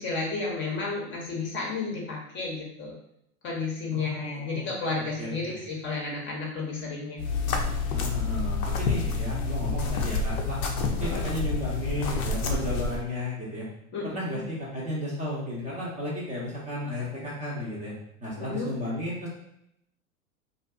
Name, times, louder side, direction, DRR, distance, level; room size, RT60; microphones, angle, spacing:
voice 1, 0.0-3.0 3.4-7.2 10.8-11.3 13.9-14.4 18.4-18.7, left 3 dB, 25° left, -2 dB, 0.6 m, -32 dB
voice 2, 3.9-4.7 5.0-5.5 7.9-10.6 10.9-13.7 14.0-17.9 18.2-19.2, left 1 dB, 15° right, -6 dB, 0.5 m, -33 dB
sound 1, 7.2-13.0, left 4 dB, 75° left, 0.6 m, -28 dB
2.5 x 2.3 x 2.3 m, 0.78 s
hypercardioid pair, 100°, 43 cm